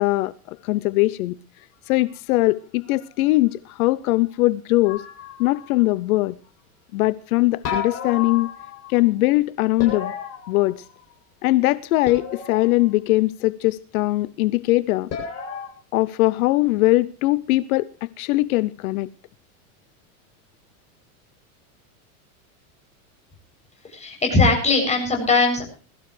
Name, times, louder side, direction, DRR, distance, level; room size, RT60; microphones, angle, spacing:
voice 1, 0.0-1.4 1.9-5.1 5.4-6.4 6.9-8.5 8.9-10.1 10.5-10.8 11.4-15.1 15.9-19.1, left 19 dB, 75° left, 0.7 m, -21 dB
sound 1, 4.8-5.8 7.6-9.0 9.8-11.1 12.0-12.9 15.1-15.7, left 7 dB, 35° left, 7.6 m, -32 dB
voice 2, 23.9-25.6, left 3 dB, 15° left, 7.3 m, -19 dB
21.5 x 14.0 x 3.2 m
supercardioid pair, 135°, 43 cm